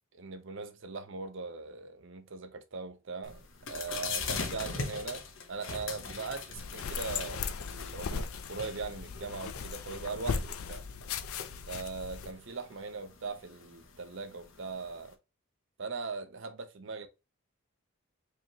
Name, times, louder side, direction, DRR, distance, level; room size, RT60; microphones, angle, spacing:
voice 1, 0.1-3.4 3.7-10.8 11.7-15.2 15.8-17.1, right 4 dB, 60° right, 0.7 m, -40 dB
sound 1, 3.2-15.1, left 5 dB, 60° left, 0.9 m, -42 dB
sound 2, 6.6-12.3, left 5 dB, 80° left, 0.5 m, -38 dB
4.7 x 3.0 x 2.8 m
head